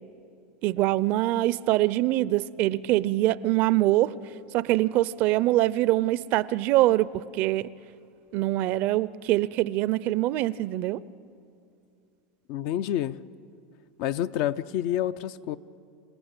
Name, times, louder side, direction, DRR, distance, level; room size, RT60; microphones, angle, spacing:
voice 1, 0.6-4.1 4.5-7.7 8.3-11.0, right 16 dB, 55° right, 19 dB, 0.5 m, -24 dB
voice 2, 12.5-13.2 14.0-15.6, left 11 dB, 60° left, 13 dB, 0.6 m, -28 dB
27.0 x 15.5 x 8.9 m, 2.5 s
supercardioid pair, 120°, 4 cm